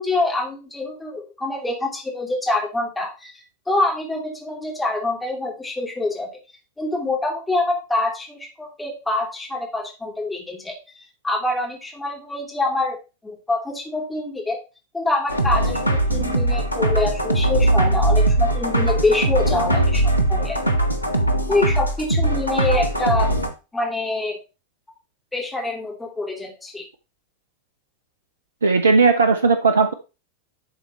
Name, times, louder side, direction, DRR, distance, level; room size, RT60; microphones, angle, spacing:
voice 1, 0.0-6.3 6.8-10.8 11.2-13.0 13.2-14.6 14.9-20.6 21.5-23.3 23.7-24.4 25.3-26.8, left 2 dB, 5° left, -2 dB, 2.7 m, -25 dB
sound 1, 15.3-23.5, right 1 dB, 90° right, 1.1 m, -20 dB
voice 2, 28.6-29.9, right 4 dB, 70° right, 8 dB, 0.6 m, -16 dB
11.5 x 4.2 x 3.2 m, 0.30 s
figure-of-eight pair, 90°, 0 cm